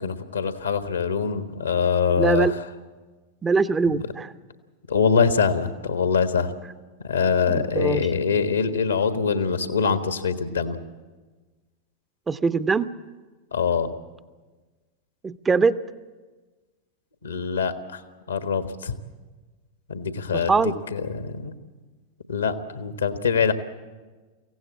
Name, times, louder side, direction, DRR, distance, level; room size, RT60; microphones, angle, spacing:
voice 1, 0.0-2.5 3.9-4.0 4.9-6.5 7.0-10.8 13.5-13.9 17.2-18.0 18.3-18.9 19.9-21.5 22.3-23.5, left 6 dB, 75° left, 10 dB, 1.4 m, -24 dB
voice 2, 2.2-2.5 3.4-4.3 7.4-8.1 12.3-12.9 15.2-15.8 20.3-20.7, right 4 dB, 15° right, 15 dB, 0.6 m, -22 dB
23.5 x 16.0 x 8.6 m, 1.3 s
figure-of-eight pair, 90°, 0 cm